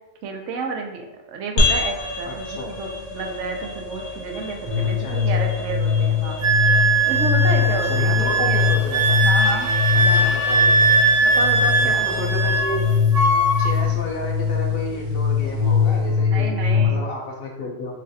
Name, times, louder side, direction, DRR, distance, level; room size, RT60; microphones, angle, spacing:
voice 1, 0.2-6.4 7.0-8.6 9.2-9.7 10.0-10.3 11.2-12.3 16.3-17.0, right 4 dB, 80° right, 3 dB, 0.9 m, -30 dB
sound 1, 1.6-16.2, left 2 dB, 85° left, 1.2 m, -31 dB
voice 2, 2.2-2.7 5.0-5.4 7.6-9.3 9.9-10.9 11.8-12.8 13.6-17.9, left 2 dB, 60° left, 0 dB, 0.8 m, -32 dB
sound 2, 4.7-16.9, left 7 dB, 35° right, 0.9 m, -22 dB
Wind instrument woodwind instrument, 6.4-12.8 13.1-13.8, right 3 dB, 55° right, 0.4 m, -20 dB
3.2 x 2.4 x 3.9 m, 0.97 s
omnidirectional pair, 1.2 m